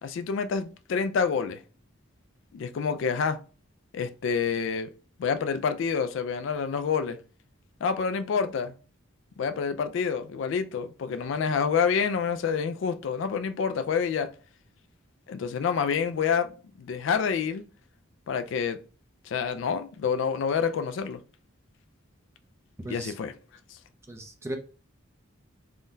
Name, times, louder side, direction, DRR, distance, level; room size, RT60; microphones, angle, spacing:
voice 1, 0.0-1.6 2.5-3.4 3.9-4.9 5.2-7.2 7.8-8.7 9.4-14.3 15.3-16.5 16.8-17.6 18.3-18.8 19.3-21.2 22.9-23.3, left 6 dB, 60° left, 0.3 m, -27 dB
voice 2, 22.8-23.1 24.1-24.6, right 1 dB, 15° right, 0.4 m, -36 dB
3.5 x 2.6 x 2.2 m
head